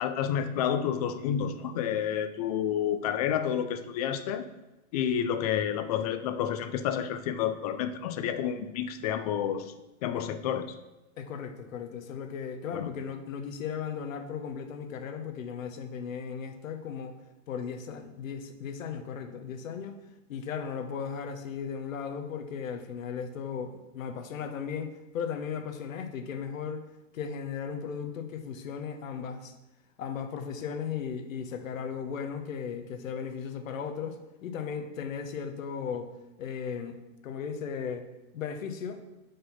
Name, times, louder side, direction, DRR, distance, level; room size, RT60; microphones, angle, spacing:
voice 1, 0.0-4.5 4.9-9.7 10.0-10.8 12.7-12.9, left 9 dB, 35° left, 10 dB, 0.4 m, -30 dB
voice 2, 11.2-17.2 17.5-20.0 20.3-26.8 27.1-29.5 30.0-36.1 36.4-37.0 37.2-38.1 38.3-39.0, left 7 dB, 85° left, 6 dB, 1.1 m, -36 dB
5.8 x 5.2 x 5.6 m, 1.0 s
hypercardioid pair, 140°, 39 cm